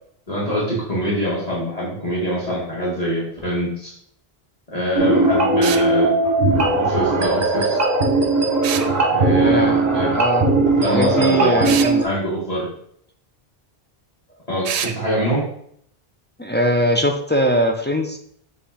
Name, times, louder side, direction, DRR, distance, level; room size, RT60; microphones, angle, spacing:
voice 1, 0.3-3.9 4.7-6.1 6.5-7.8 9.1-10.1 10.8-11.7 12.0-12.7 14.5-15.4, equal, 35° left, -7 dB, 2.1 m, -24 dB
sound 1, 5.0-12.0, right 2 dB, 40° right, 1.2 m, -18 dB
sound 2, 5.6-5.9 8.6-8.9 11.6-11.9 14.6-15.0, right 9 dB, 85° right, 0.8 m, -26 dB
voice 2, 9.4-10.5 10.8-12.1 16.4-18.2, equal, 15° left, 2 dB, 0.4 m, -21 dB
7.6 x 3.3 x 4.2 m, 0.67 s
omnidirectional pair, 1.1 m